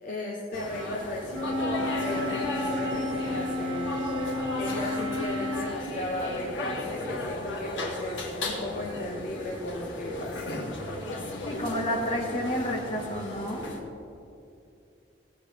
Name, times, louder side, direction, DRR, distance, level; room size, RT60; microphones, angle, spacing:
voice 1, 0.0-4.0 4.5-10.6, left 1 dB, 45° left, -2 dB, 1.0 m, -36 dB
sound 1, 0.5-13.8, left 1 dB, 85° left, 1.8 m, -35 dB
Wind instrument woodwind instrument, 1.3-5.8, left 1 dB, 85° right, 1.4 m, -32 dB
voice 2, 11.4-13.6, equal, 30° left, -1 dB, 1.5 m, -30 dB
17.5 x 8.3 x 3.5 m, 2.6 s
head